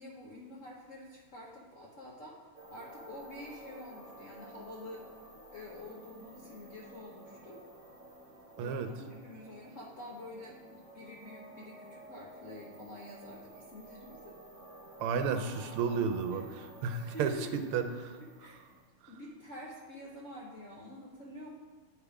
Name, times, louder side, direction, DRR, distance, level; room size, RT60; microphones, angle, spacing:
voice 1, 0.0-2.4 2.7-5.1 5.5-7.6 8.6-14.3 16.4-16.5 17.1-17.6 18.4-18.6 19.1-21.5, left 1 dB, 60° left, -4 dB, 0.8 m, -47 dB
sound 1, 2.5-18.9, right 1 dB, 25° right, 1.5 m, -53 dB
voice 2, 8.6-8.9 15.0-16.4 16.8-18.2 19.0-19.1, right 6 dB, 80° right, 7 dB, 1.5 m, -32 dB
9.5 x 3.5 x 4.8 m, 1.5 s
omnidirectional pair, 2.4 m